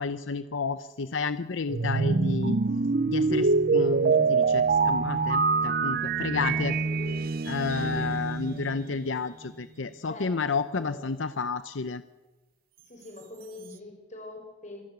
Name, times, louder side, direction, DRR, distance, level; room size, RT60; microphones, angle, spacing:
voice 1, 0.0-2.6 3.1-6.7 7.5-12.0, left 4 dB, 85° left, 12 dB, 0.7 m, -31 dB
sound 1, 1.7-9.0, right 4 dB, 50° right, 0.7 m, -25 dB
voice 2, 6.4-7.3 7.8-8.7 10.0-10.3 10.7-11.1 12.9-14.8, left 2 dB, 40° left, 2 dB, 6.0 m, -44 dB
27.0 x 13.0 x 8.3 m, 1.1 s
head